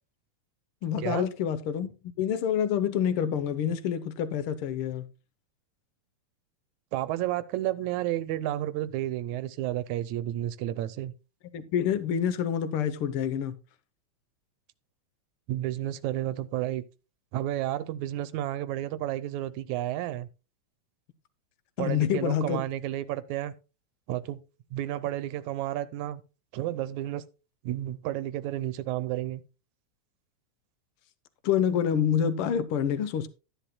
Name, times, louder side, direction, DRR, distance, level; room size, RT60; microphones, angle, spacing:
voice 1, 0.8-1.9 2.2-5.1 11.5-13.6 21.8-22.6 31.4-33.3, left 8 dB, 70° left, 1.4 m, -27 dB
voice 2, 6.9-11.1 15.5-16.8 17.3-20.3 21.8-23.5 24.1-24.4 24.7-26.2 26.5-27.2 27.6-29.4, right 13 dB, 80° right, 2.0 m, -31 dB
13.0 x 10.5 x 2.2 m
omnidirectional pair, 3.4 m